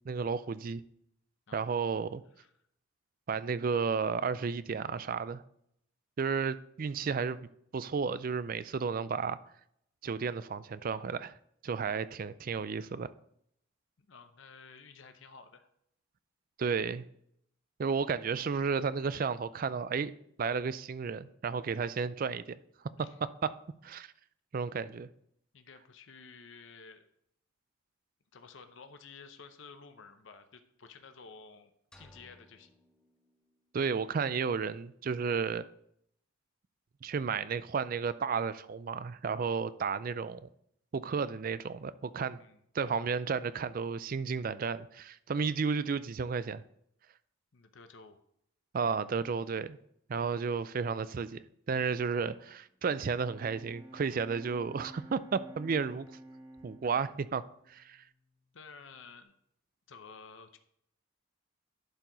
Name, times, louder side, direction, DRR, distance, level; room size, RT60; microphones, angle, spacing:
voice 1, 0.1-0.8 1.5-2.2 3.3-5.4 6.2-9.4 10.0-11.3 11.6-13.1 16.6-17.0 17.8-20.1 20.4-22.6 23.8-24.1 24.5-25.1 33.7-35.6 37.0-40.5 40.9-42.4 42.7-46.6 48.7-49.8 50.1-56.1 56.6-58.0, right 5 dB, 40° right, 0.3 m, -33 dB
voice 2, 14.0-15.7 23.0-23.1 25.5-27.1 28.3-32.7 42.4-42.6 47.5-48.2 54.8-54.9 56.9-57.1 58.5-59.3 59.9-60.6, left 5 dB, 60° left, 0.7 m, -52 dB
sound 1, 31.9-33.9, equal, 5° left, 0.7 m, -61 dB
Bowed string instrument, 52.7-58.5, right 1 dB, 20° right, 1.6 m, -52 dB
11.0 x 4.7 x 3.9 m
head